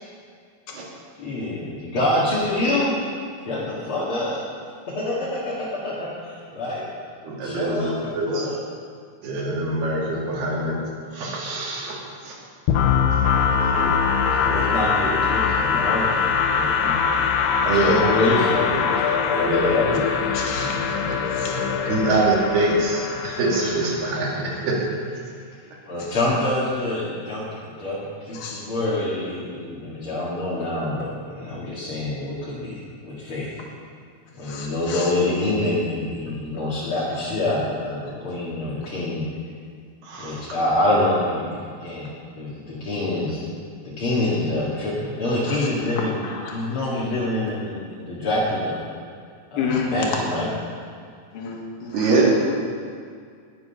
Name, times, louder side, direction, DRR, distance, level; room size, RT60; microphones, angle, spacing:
voice 1, 1.2-2.9 3.5-4.4 4.9-6.8 7.4-8.6 13.4-17.3 17.6-20.2 21.5-21.7 25.9-33.5 34.4-39.3 40.2-43.4 43.8-46.2 46.5-48.8 49.5-50.5, left 2 dB, 40° left, -8 dB, 2.3 m, -26 dB
voice 2, 7.2-8.5 9.2-10.8 11.1-12.0 12.2-12.4 13.6-13.7 17.6-18.0 18.3-18.4 19.1-19.7 20.5-20.8 21.0-21.1 21.8-24.8 40.0-40.5 51.9-52.3, right 2 dB, 75° right, -4 dB, 4.5 m, -24 dB
sound 1, 12.7-24.4, left 6 dB, 85° left, 2.9 m, -22 dB
voice 3, 20.3-21.0 21.3-21.6 26.1-26.2 28.3-28.7 34.4-35.1 45.5-45.7 46.2-46.8 49.6-49.9 51.3-52.1, left 6 dB, 70° left, -1 dB, 3.6 m, -31 dB
20.0 x 7.7 x 5.7 m, 2.1 s
omnidirectional pair, 4.6 m